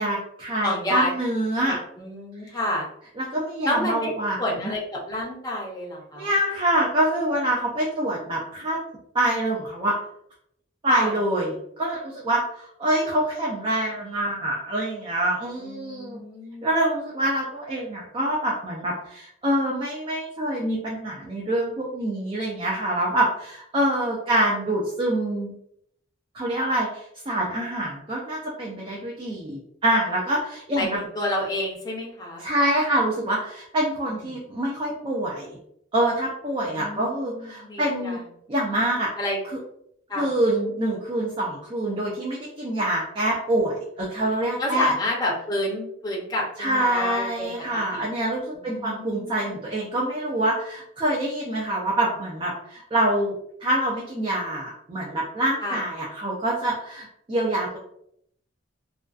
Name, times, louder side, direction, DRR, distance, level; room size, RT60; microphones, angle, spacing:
voice 1, 0.0-1.8 3.2-4.4 6.2-8.8 9.1-10.0 10.8-16.2 16.6-25.5 26.3-31.0 32.4-35.6 35.9-38.2 38.5-39.1 40.2-44.9 46.6-53.3 53.6-57.8, right 1 dB, 25° right, -3 dB, 0.4 m, -25 dB
voice 2, 0.6-1.1 1.7-2.9 3.6-4.1 4.4-6.3 10.9-11.1 15.6-16.7 30.7-32.4 34.1-34.2 36.7-38.2 39.2-39.4 40.1-40.3 44.6-48.1 48.6-49.6 55.6-55.8, left 1 dB, 20° left, -2 dB, 0.6 m, -30 dB
2.5 x 2.2 x 2.3 m, 0.72 s
head